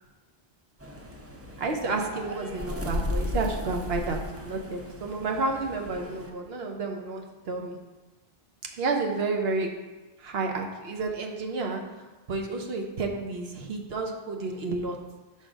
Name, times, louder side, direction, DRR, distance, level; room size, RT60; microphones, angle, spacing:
sound 1, 0.8-6.3, left 1 dB, 20° right, 0.4 m, -35 dB
voice 1, 1.6-7.8 8.7-9.7 10.2-11.8 12.3-15.0, right 3 dB, 75° right, 2 dB, 1.0 m, -30 dB
5.9 x 3.6 x 5.1 m, 1.2 s
omnidirectional pair, 1.0 m